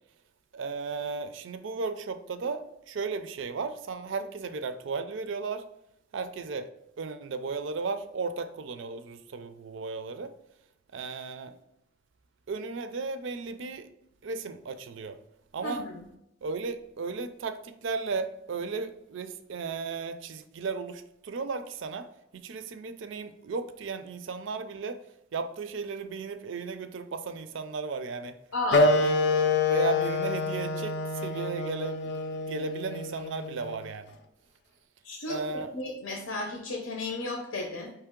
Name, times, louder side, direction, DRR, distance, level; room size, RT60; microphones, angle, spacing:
voice 1, 0.5-5.7 6.1-6.7 7.0-10.3 10.9-11.5 12.5-13.9 14.2-15.2 15.5-15.9 16.4-25.0 25.3-28.4 28.8-29.2 29.7-34.1 35.3-35.7, right 4 dB, 65° right, 10 dB, 0.4 m, -35 dB
voice 2, 15.6-16.0 28.5-28.9 35.0-37.9, left 2 dB, 85° left, 1 dB, 0.7 m, -34 dB
Wind instrument woodwind instrument, 28.7-33.8, left 3 dB, 50° left, 0.4 m, -27 dB
4.5 x 3.1 x 3.6 m, 0.84 s
head